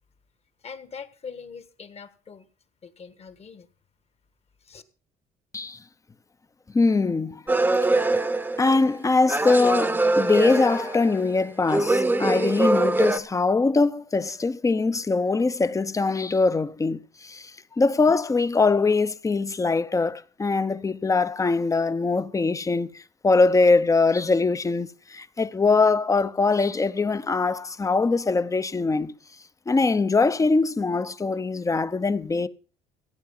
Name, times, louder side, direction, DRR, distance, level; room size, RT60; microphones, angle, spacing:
voice 1, 0.6-2.5 2.8-3.7 4.6-4.8, left 6 dB, 40° left, 1.6 m, -42 dB
voice 2, 6.7-7.4 8.6-29.1 29.7-32.5, left 3 dB, 20° left, 0.7 m, -22 dB
sound 1, 7.5-9.0 9.3-11.3 11.7-13.2, right 2 dB, 10° right, 0.9 m, -23 dB
16.0 x 8.7 x 5.5 m
cardioid pair, 110°, 17 cm